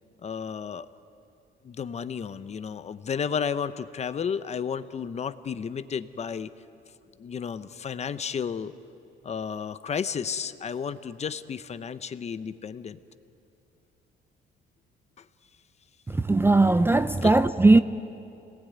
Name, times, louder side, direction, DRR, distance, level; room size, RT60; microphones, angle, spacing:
voice 1, 0.2-0.9 1.6-6.5 7.2-8.7 9.2-13.0 17.2-17.4, left 7 dB, 35° left, 0.7 m, -32 dB
voice 2, 16.3-17.8, right 2 dB, 10° right, 0.5 m, -18 dB
26.5 x 19.5 x 9.5 m
cardioid pair, 135°, 19 cm